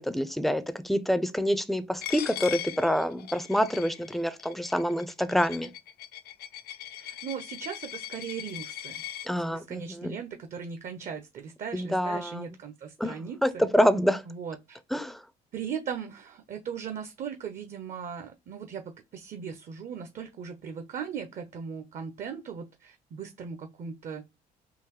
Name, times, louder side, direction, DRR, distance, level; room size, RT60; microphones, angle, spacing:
voice 1, 0.0-5.7 9.3-10.2 11.7-12.5 13.0-14.2 14.9-15.2, equal, ahead, 0.4 m, -27 dB
Coin (dropping), 2.0-9.3, left 12 dB, 65° left, 0.5 m, -40 dB
voice 2, 7.0-9.0 9.3-13.7 14.3-14.8 15.5-24.2, right 7 dB, 50° right, 0.6 m, -38 dB
3.8 x 2.6 x 2.9 m
cardioid pair, 110°, 17 cm